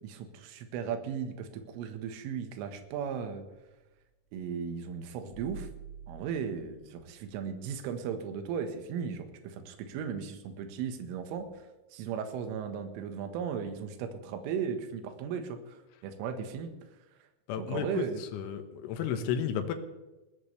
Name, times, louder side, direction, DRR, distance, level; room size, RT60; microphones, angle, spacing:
voice 1, 0.0-3.5 4.3-5.7 6.1-11.5 11.9-15.8 16.0-16.7 17.6-18.2, right 7 dB, 75° right, 6 dB, 3.9 m, -36 dB
sound 1, 5.2-7.8 8.3-8.4 11.4-11.5, right 6 dB, 35° left, 3.0 m, -49 dB
voice 2, 17.5-18.1 18.3-19.7, left 8 dB, 75° left, 7 dB, 3.5 m, -32 dB
20.5 x 17.0 x 3.3 m, 1.1 s
omnidirectional pair, 5.9 m